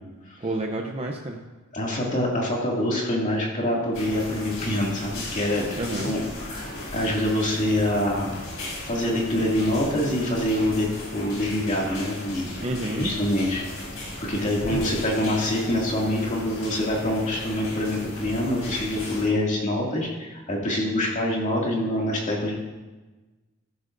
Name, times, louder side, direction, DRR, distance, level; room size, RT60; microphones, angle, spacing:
voice 1, 0.4-1.4 5.8-6.1 12.6-13.1 14.7-14.8, right 1 dB, 30° right, 1 dB, 0.7 m, -29 dB
voice 2, 1.7-8.4 8.9-12.5 12.9-13.6 14.3-22.6, left 1 dB, 35° left, -3 dB, 2.3 m, -25 dB
sound 1, 3.9-19.3, left 1 dB, 70° left, 4.4 m, -36 dB
13.5 x 13.0 x 2.6 m, 1.2 s
head